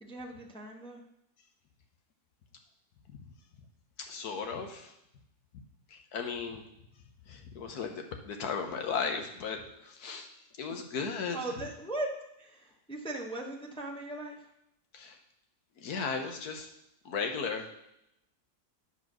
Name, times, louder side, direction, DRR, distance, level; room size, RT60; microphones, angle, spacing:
voice 1, 0.0-1.0 11.3-12.1 12.4-14.5, right 2 dB, 5° left, 0 dB, 0.7 m, -38 dB
voice 2, 4.0-4.9 5.9-6.7 7.3-10.3 10.6-11.4 14.9-15.2 15.8-16.7 17.1-17.7, left 5 dB, 75° left, 4 dB, 1.6 m, -36 dB
9.6 x 4.5 x 6.0 m, 0.82 s
omnidirectional pair, 1.6 m